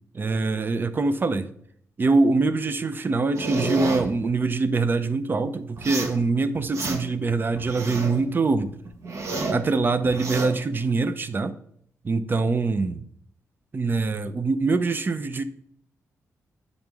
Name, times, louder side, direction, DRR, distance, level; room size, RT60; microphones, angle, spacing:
voice 1, 0.1-1.5 2.0-8.7 9.5-11.5 12.0-13.0 13.7-15.4, right 3 dB, 35° right, 0.5 m, -24 dB
sound 1, 3.4-4.0 5.8-6.2 6.5-7.2 7.6-8.2 8.6-9.6 10.0-10.5, right 3 dB, 55° right, 1.2 m, -30 dB
8.8 x 3.8 x 3.5 m
cardioid pair, 100°, 6 cm